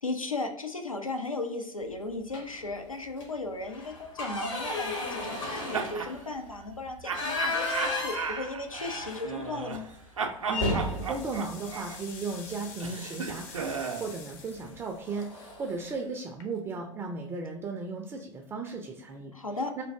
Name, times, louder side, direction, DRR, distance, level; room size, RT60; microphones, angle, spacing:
voice 1, 0.0-9.9 19.3-19.8, left 3 dB, 90° left, 5 dB, 0.4 m, -36 dB
sound 1, 2.3-2.7 3.1-3.2 3.6-9.7 10.0-10.1 10.5-12.6 14.0-14.2 14.6-14.8 15.0-15.7, left 2 dB, 70° left, 1.2 m, -34 dB
sound 2, 5.3-6.2 7.0-9.9 10.2-14.1, right 5 dB, 80° right, 0.4 m, -35 dB
sound 3, 9.7-10.1 10.6-16.9, left 6 dB, 50° left, 0.6 m, -48 dB
voice 2, 10.5-15.3 15.6-19.3 19.8-19.9, right 4 dB, 15° right, 2 dB, 0.3 m, -35 dB
3.2 x 2.5 x 3.3 m, 0.80 s
figure-of-eight pair, 85°, 17 cm